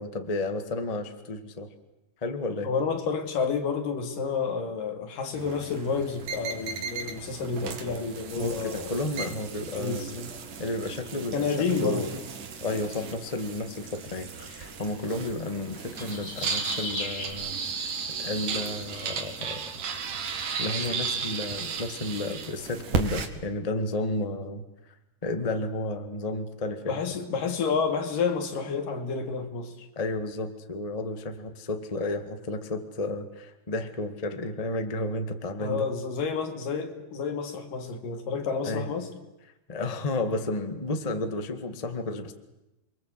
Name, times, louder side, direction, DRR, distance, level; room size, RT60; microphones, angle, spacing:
voice 1, 0.0-1.7 2.2-2.7 8.3-10.1 10.6-11.5 11.8-12.1 12.6-17.9 18.2-19.6 20.6-24.6 25.2-27.2 29.9-35.9 38.6-38.9 39.7-42.3, left 2 dB, 20° left, 7 dB, 1.1 m, -32 dB
voice 2, 2.6-8.9 9.7-10.3 11.3-12.1 26.9-29.9 35.6-39.1, left 5 dB, 80° left, 5 dB, 3.9 m, -30 dB
sound 1, 5.4-23.3, right 5 dB, 70° right, 3.6 m, -35 dB
sound 2, 11.7-17.3, left 1 dB, 55° left, 7.3 m, -38 dB
28.5 x 23.5 x 8.1 m, 0.96 s
omnidirectional pair, 3.9 m